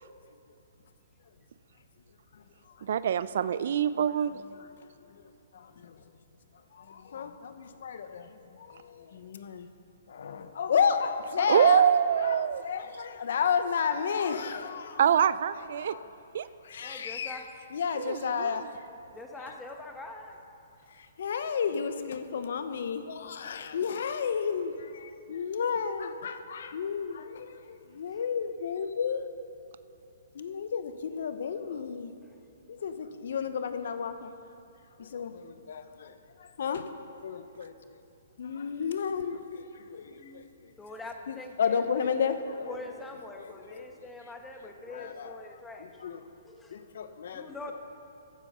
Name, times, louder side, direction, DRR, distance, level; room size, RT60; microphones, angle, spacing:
voice 1, 2.1-3.2 4.0-4.1 4.4-5.2 5.5-6.2 6.5-9.7 10.1-11.9 12.1-15.0 15.5-16.1 16.6-17.4 17.7-18.9 19.3-19.6 20.9-29.3 30.3-32.1 32.7-34.3 35.0-38.0 38.4-40.7 41.3-42.8 43.4-44.1 44.9-46.3 46.7-47.7, left 6 dB, 65° left, 10 dB, 0.8 m, -33 dB
voice 2, 2.8-4.4 11.5-12.6 15.0-16.0 16.3-16.5 18.0-18.5, right 8 dB, 60° right, 16 dB, 0.4 m, -24 dB
voice 3, 11.4-11.9 16.8-17.4 19.1-20.4 40.0-40.5 40.8-42.1 42.7-45.9 46.4-46.8 47.3-47.7, left 2 dB, 10° left, 3 dB, 1.2 m, -43 dB
15.0 x 7.5 x 5.4 m, 2.8 s
hypercardioid pair, 135°, 0 cm